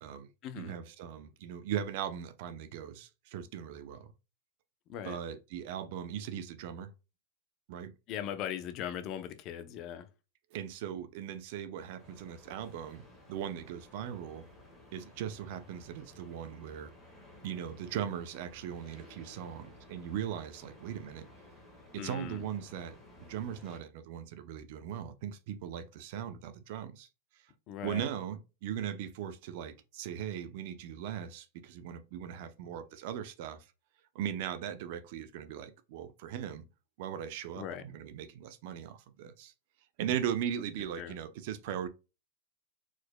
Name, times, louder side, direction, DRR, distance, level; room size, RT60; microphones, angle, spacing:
voice 1, 0.5-4.1 5.0-6.9 7.7-7.9 10.5-13.0 13.3-14.4 14.9-16.9 17.4-21.3 21.9-27.1 27.8-33.7 34.1-36.6 37.0-39.5 40.0-41.9, right 9 dB, 55° right, 0.6 m, -39 dB
voice 2, 8.1-10.1 22.0-22.4 27.7-28.0 37.6-37.8 41.0-41.1, left 10 dB, 35° left, 0.6 m, -39 dB
sound 1, 12.0-23.8, left 1 dB, 5° left, 1.5 m, -56 dB
4.8 x 4.3 x 2.2 m
supercardioid pair, 155°, 0 cm